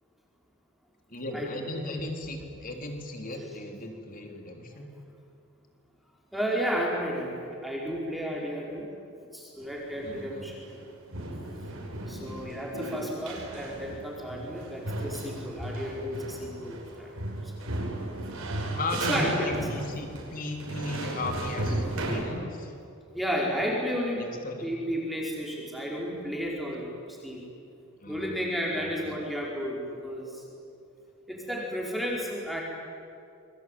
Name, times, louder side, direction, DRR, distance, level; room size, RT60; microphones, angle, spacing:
voice 1, 1.1-4.9 10.0-10.5 12.2-12.5 18.8-22.7 24.2-24.7 28.0-28.4 28.7-29.2, left 2 dB, 40° left, 3 dB, 3.5 m, -36 dB
voice 2, 6.3-8.9 9.3-10.6 12.1-17.1 17.4-17.8 19.1-19.5 23.1-24.3 24.6-27.4 28.1-30.4 31.3-32.6, equal, ahead, -3 dB, 4.9 m, -32 dB
sound 1, 9.6-10.8 11.1-22.2, right 1 dB, 70° right, 5.9 m, -35 dB
28.0 x 23.0 x 9.3 m, 2.5 s
head